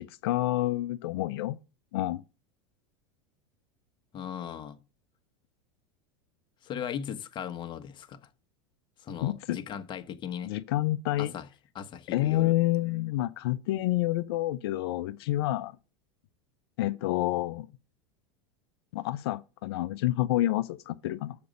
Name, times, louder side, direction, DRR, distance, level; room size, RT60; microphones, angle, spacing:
voice 1, 0.0-1.6 1.9-2.2 9.2-9.6 10.4-11.3 12.1-15.7 16.8-17.7 18.9-21.4, left 16 dB, 70° left, 0.5 m, -28 dB
voice 2, 4.1-4.8 6.6-8.2 9.0-10.5 11.2-11.5 11.7-12.5, left 8 dB, 35° left, 1.3 m, -38 dB
6.8 x 5.1 x 6.5 m
hypercardioid pair, 95°, 14 cm